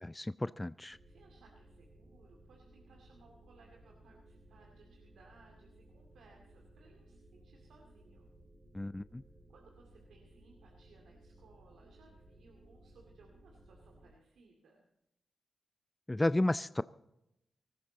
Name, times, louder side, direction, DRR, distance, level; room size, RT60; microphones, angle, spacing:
voice 1, 0.0-1.0 8.7-9.2 16.1-16.8, left 1 dB, 20° left, 16 dB, 0.4 m, -32 dB
sound 1, 0.9-14.1, right 1 dB, 55° right, 3.2 m, -60 dB
voice 2, 1.1-8.3 9.5-14.9, right 3 dB, 85° right, 0 dB, 2.3 m, -63 dB
18.5 x 14.5 x 4.0 m, 0.85 s
cardioid pair, 50°, 0 cm